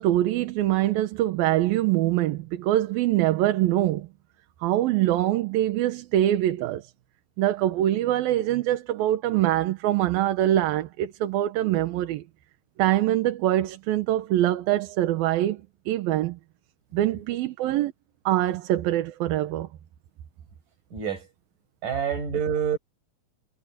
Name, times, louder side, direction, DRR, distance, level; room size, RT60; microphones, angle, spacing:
voice 1, 0.0-4.1 4.6-6.9 7.4-12.2 12.8-16.4 16.9-17.9 18.3-19.7, right 13 dB, 80° right, 2.9 m, -24 dB
voice 2, 20.9-21.3 21.8-22.8, right 8 dB, 60° right, 8.5 m, -27 dB
omnidirectional pair, 4.2 m